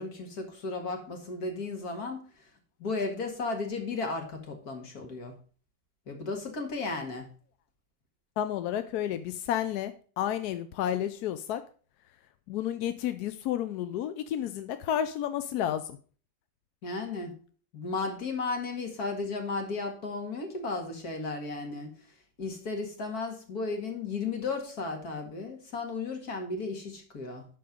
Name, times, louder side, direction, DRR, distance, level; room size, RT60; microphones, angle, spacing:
voice 1, 0.0-2.4 2.8-5.4 6.1-7.3 16.8-17.3 17.7-21.9 22.4-27.5, left 3 dB, 55° left, 4 dB, 2.4 m, -34 dB
voice 2, 8.4-11.6 12.5-16.0, left 10 dB, 70° left, 11 dB, 1.0 m, -31 dB
11.5 x 4.6 x 5.2 m, 0.41 s
omnidirectional pair, 2.0 m